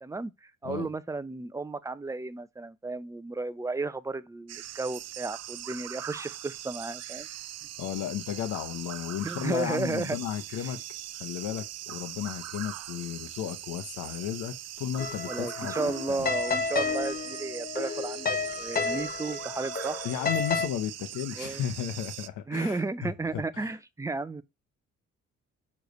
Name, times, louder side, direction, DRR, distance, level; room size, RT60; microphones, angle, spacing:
voice 1, 0.0-7.3 9.2-10.2 10.6-10.7 15.2-20.1 21.4-21.6 22.5-24.4, right 3 dB, 10° right, 0.5 m, -33 dB
sound 1, 4.5-22.3, right 13 dB, 60° right, 0.5 m, -41 dB
voice 2, 7.8-10.8 11.2-15.7 16.1-16.3 20.0-23.7, left 10 dB, 80° left, 0.8 m, -34 dB
sound 2, 15.0-20.7, left 4 dB, 30° left, 0.9 m, -31 dB
6.4 x 3.2 x 5.2 m
cardioid pair, 90°, 30 cm